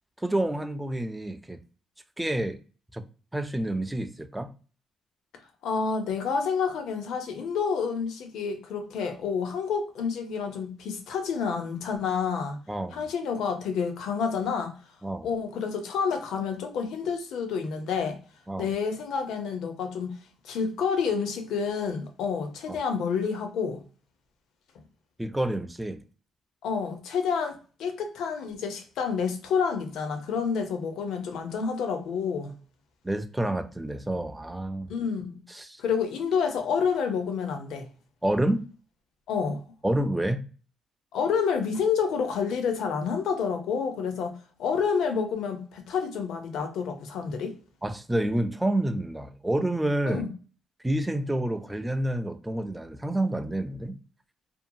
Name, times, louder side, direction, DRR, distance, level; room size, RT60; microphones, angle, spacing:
voice 1, 0.2-1.6 2.2-2.6 2.9-3.0 3.3-4.5 12.7-13.0 15.0-15.3 18.5-18.7 22.7-22.8 25.2-26.0 33.0-34.9 35.5-35.8 38.2-38.7 39.8-40.4 47.8-50.2 50.8-53.9, right 1 dB, 10° right, 0.3 m, -28 dB
voice 2, 5.6-12.6 12.9-14.7 15.2-18.2 18.6-20.1 20.4-23.8 26.6-32.5 34.9-35.4 35.8-37.9 39.3-39.6 41.1-44.3 44.6-47.6 50.1-50.3, left 6 dB, 80° left, 0.6 m, -29 dB
2.6 x 2.1 x 2.7 m
cardioid pair, 90°, 0 cm